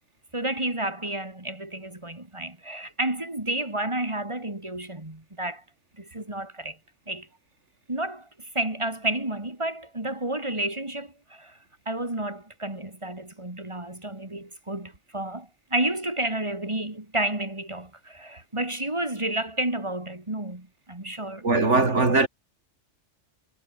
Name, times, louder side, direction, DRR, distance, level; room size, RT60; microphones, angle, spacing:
voice 1, 0.3-5.6 6.0-6.8 7.1-7.3 7.9-11.6 11.9-22.2, right 1 dB, 25° right, 3.0 m, -31 dB
voice 2, 21.4-22.3, right 3 dB, 65° right, 3.4 m, -20 dB
omnidirectional pair, 1.3 m